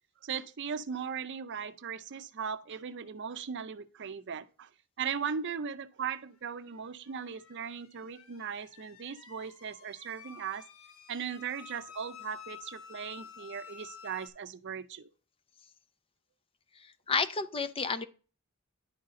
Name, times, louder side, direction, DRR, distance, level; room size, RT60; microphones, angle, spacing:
voice 1, 0.2-4.7 5.0-10.6 11.1-15.1, right 7 dB, 60° right, 0.5 m, -38 dB
sound 1, 6.7-14.3, left 7 dB, 75° left, 1.0 m, -51 dB
voice 2, 17.1-18.0, left 5 dB, 25° left, 0.5 m, -30 dB
10.5 x 4.1 x 3.7 m
head